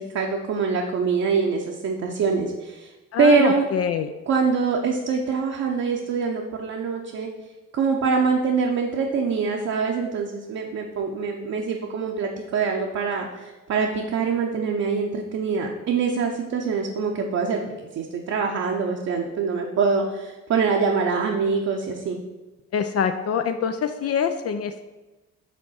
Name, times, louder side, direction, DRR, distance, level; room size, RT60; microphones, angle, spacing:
voice 1, 0.0-2.9 3.2-3.6 4.3-7.3 7.7-17.6 18.0-22.2, right 5 dB, 55° right, 0 dB, 0.7 m, -24 dB
voice 2, 3.1-4.1 22.7-24.8, left 7 dB, 55° left, 8 dB, 0.5 m, -25 dB
5.2 x 3.5 x 5.6 m, 1.1 s
cardioid pair, 90°, 30 cm